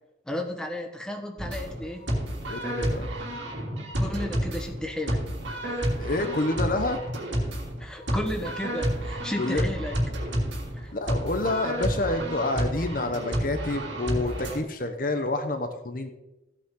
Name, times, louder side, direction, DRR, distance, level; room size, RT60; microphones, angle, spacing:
voice 1, 0.3-2.1 4.0-5.2 5.6-5.8 7.8-10.0 10.7-10.9, left 1 dB, 5° left, 2 dB, 1.2 m, -33 dB
sound 1, 1.4-14.6, equal, 85° right, 3.1 m, -30 dB
voice 2, 2.5-3.1 6.0-7.0 9.4-9.6 10.9-16.1, left 2 dB, 45° left, 7 dB, 1.0 m, -28 dB
16.0 x 8.6 x 3.8 m, 1.0 s
head